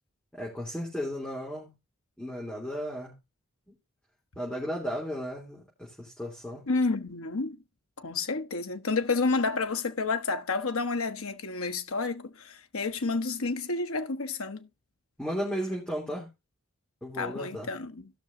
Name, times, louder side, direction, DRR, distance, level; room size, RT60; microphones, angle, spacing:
voice 1, 0.3-1.7 2.2-3.1 3.7-3.8 4.3-6.6 15.2-16.3 17.0-17.7, equal, 5° left, 3.3 m, -35 dB
voice 2, 6.7-7.6 8.0-14.7 17.1-18.1, left 3 dB, 75° left, 1.0 m, -30 dB
17.0 x 6.1 x 2.7 m
head